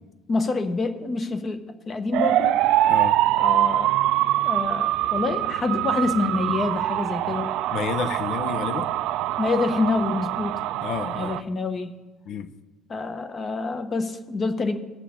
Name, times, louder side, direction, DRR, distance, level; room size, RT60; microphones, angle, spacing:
voice 1, 0.3-2.6 3.4-3.9 4.4-7.6 9.4-10.6 11.2-12.0 12.9-14.8, left 3 dB, 30° left, 1.1 m, -27 dB
sound 1, 2.1-11.4, right 14 dB, 75° right, 0.4 m, -24 dB
voice 2, 7.7-8.9 10.8-11.4 12.3-12.5, left 7 dB, 60° left, 0.8 m, -30 dB
20.0 x 6.7 x 3.7 m
cardioid pair, 130°, 0 cm